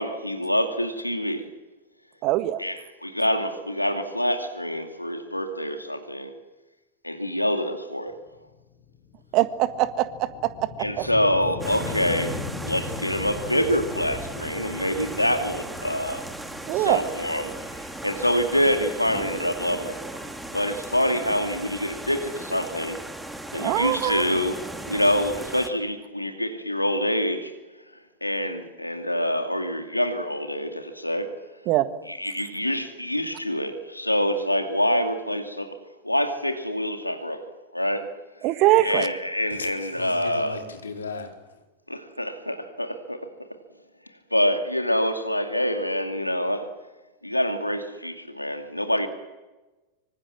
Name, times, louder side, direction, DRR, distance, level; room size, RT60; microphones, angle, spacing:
voice 1, 0.0-1.5 2.6-6.3 7.0-8.1 10.8-16.2 16.7-20.0 20.5-23.0 23.5-24.6 24.9-27.5 28.2-31.4 32.1-35.8 36.0-38.1 38.8-40.6 41.9-43.2 44.3-46.7 47.2-49.1, equal, 85° left, 2.5 m, -26 dB
voice 2, 2.2-2.6 9.3-10.7 11.0-11.1 16.7-17.0 23.6-24.2 31.7-31.9 38.4-39.1, right 15 dB, 40° right, 1.7 m, -22 dB
sound 1, 8.3-19.0, left 5 dB, 35° left, 3.7 m, -39 dB
sound 2, 11.6-25.7, right 1 dB, 5° right, 2.7 m, -37 dB
voice 3, 39.6-41.3, left 4 dB, 70° left, 4.4 m, -36 dB
25.5 x 25.0 x 7.6 m
figure-of-eight pair, 90°, 0 cm